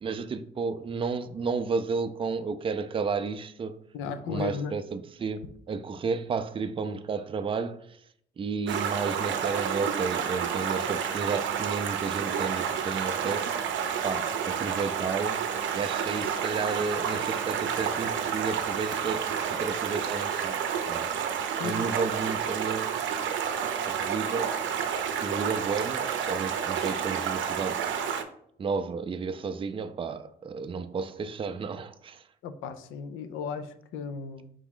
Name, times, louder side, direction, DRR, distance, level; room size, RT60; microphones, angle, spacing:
voice 1, 0.0-3.8 4.3-8.0 8.4-13.6 14.0-15.5 15.7-20.6 20.9-21.1 21.6-22.9 23.9-24.5 25.2-27.9 28.6-32.2, right 5 dB, 25° right, 0.4 m, -32 dB
voice 2, 3.9-4.8 21.6-21.8 32.4-34.5, left 6 dB, 90° left, 0.5 m, -35 dB
Stream, 8.7-28.2, right 7 dB, 70° right, 0.6 m, -30 dB
4.8 x 3.0 x 3.7 m
cardioid pair, 90°, 20 cm